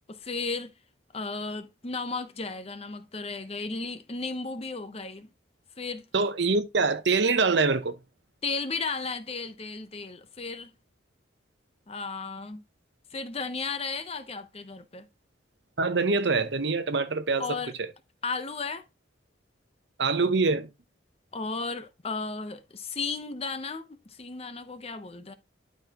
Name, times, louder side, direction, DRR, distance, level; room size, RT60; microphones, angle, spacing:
voice 1, 0.1-0.7 1.1-5.3 5.8-6.1 8.4-10.7 11.9-12.6 13.1-15.1 17.4-17.7 18.2-18.8 21.3-25.3, left 4 dB, 30° left, 0.8 m, -34 dB
voice 2, 6.1-7.9 15.8-17.6 20.0-20.7, right 4 dB, 65° right, 0.9 m, -24 dB
12.0 x 4.2 x 2.9 m
head